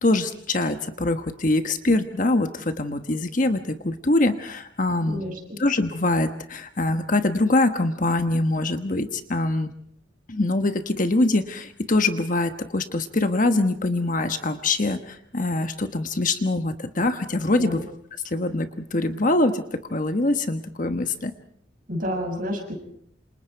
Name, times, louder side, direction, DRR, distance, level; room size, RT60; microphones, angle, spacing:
voice 1, 0.0-5.2 5.6-9.7 10.3-17.8 18.2-21.3, left 2 dB, 40° left, 8 dB, 1.2 m, -24 dB
voice 2, 5.1-5.6 17.6-17.8 21.9-22.7, equal, 45° right, 2 dB, 6.6 m, -30 dB
28.0 x 27.5 x 4.7 m, 0.66 s
head